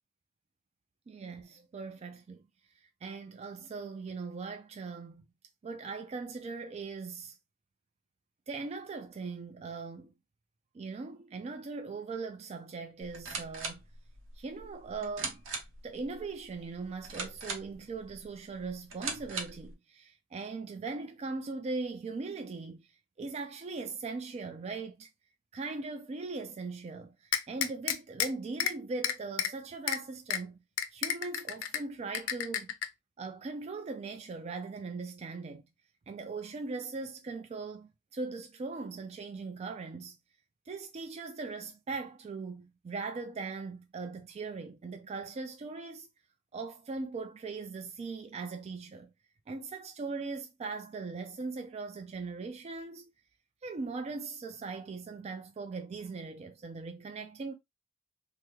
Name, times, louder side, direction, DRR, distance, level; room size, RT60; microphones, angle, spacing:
voice 1, 1.1-2.5 3.0-5.2 5.6-7.4 8.5-10.1 10.7-13.8 14.4-15.4 15.8-22.9 23.2-25.1 25.5-30.6 30.9-32.7 33.2-35.6 36.1-40.2 40.7-46.1 46.5-49.1 49.5-53.1 53.6-57.5, right 4 dB, 35° right, 0.3 m, -40 dB
sound 1, 13.0-19.7, right 4 dB, 80° right, 0.8 m, -41 dB
sound 2, 27.3-28.3 28.6-28.7 29.0-29.5 29.9-30.0 30.3-30.4 30.8-31.8 32.1-32.9, left 9 dB, 85° left, 0.4 m, -30 dB
3.4 x 2.0 x 2.9 m
head